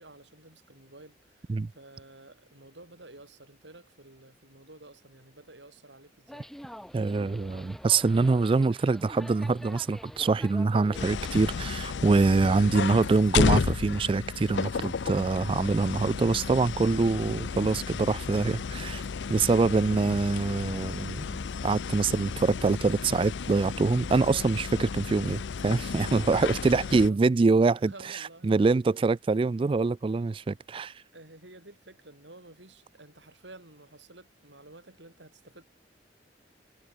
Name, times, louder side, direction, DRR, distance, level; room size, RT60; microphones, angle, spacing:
voice 1, 0.0-6.5 26.9-27.2 27.8-28.7 31.1-35.6, right 2 dB, 85° right, 7.2 m, -52 dB
sound 1, 6.3-11.7, equal, ahead, 0.9 m, -46 dB
voice 2, 6.9-19.0 19.3-27.9 28.4-30.9, right 3 dB, 30° right, 0.3 m, -25 dB
sound 2, 10.9-27.1, left 5 dB, 80° left, 0.5 m, -33 dB
head